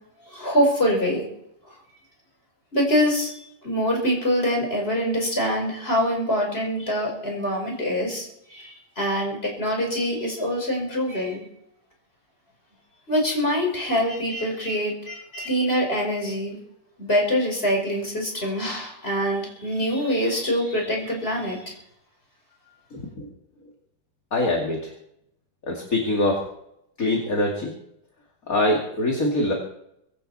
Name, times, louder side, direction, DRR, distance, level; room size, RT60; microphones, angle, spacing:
voice 1, 0.2-1.3 1.7-1.8 2.7-11.5 13.1-16.6 17.0-21.7, equal, 30° left, 0 dB, 5.6 m, -24 dB
voice 2, 22.9-23.3 24.3-24.9 25.7-26.4 27.0-27.7 28.5-29.5, left 1 dB, 50° left, -1 dB, 3.0 m, -24 dB
24.0 x 12.0 x 4.3 m, 0.77 s
omnidirectional pair, 1.9 m